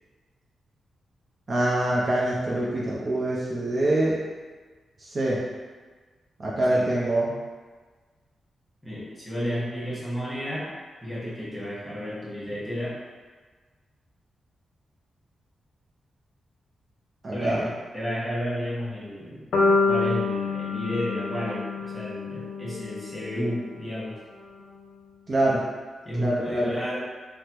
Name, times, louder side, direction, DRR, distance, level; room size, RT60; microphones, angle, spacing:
voice 1, 1.5-4.2 5.0-5.4 6.4-7.3 17.2-17.6 25.3-25.6 26.2-26.7, right 1 dB, 40° right, -6 dB, 0.5 m, -24 dB
voice 2, 8.8-10.7 11.0-13.0 17.3-19.4 19.8-24.2 26.0-27.0, equal, 10° left, -8 dB, 1.2 m, -32 dB
sound 1, 19.5-23.6, left 3 dB, 85° left, 0.4 m, -27 dB
3.4 x 2.0 x 2.9 m, 1.4 s
cardioid pair, 90°, 0 cm